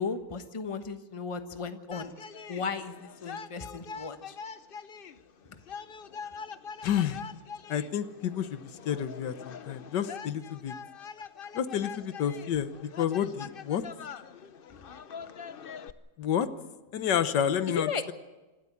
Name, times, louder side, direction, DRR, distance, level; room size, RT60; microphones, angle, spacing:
voice 1, 0.0-2.1 2.5-4.4 17.7-18.0, left 5 dB, 20° left, 9 dB, 1.1 m, -35 dB
sound 1, 1.9-15.9, left 6 dB, 50° left, 0.7 m, -44 dB
voice 2, 6.8-7.2 7.7-8.6 8.8-10.7 11.5-13.8 16.2-16.5 16.9-18.1, left 9 dB, 85° left, 12 dB, 1.7 m, -29 dB
26.0 x 13.0 x 8.6 m, 1.1 s
omnidirectional pair, 1.8 m